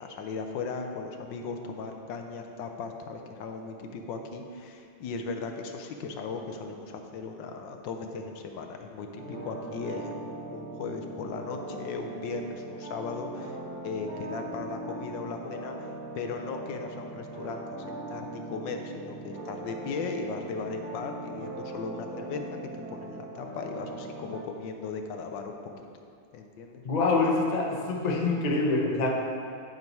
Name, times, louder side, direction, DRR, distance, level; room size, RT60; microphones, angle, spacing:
voice 1, 0.0-10.1 10.5-13.6 13.8-15.9 16.1-22.4 22.9-25.9 26.3-26.8, left 4 dB, 70° left, 4 dB, 1.3 m, -37 dB
sound 1, 9.1-24.4, right 2 dB, 50° right, 2.6 m, -40 dB
voice 2, 26.8-29.1, left 3 dB, 55° left, 0 dB, 0.4 m, -25 dB
10.5 x 4.5 x 5.4 m, 2.4 s
omnidirectional pair, 2.2 m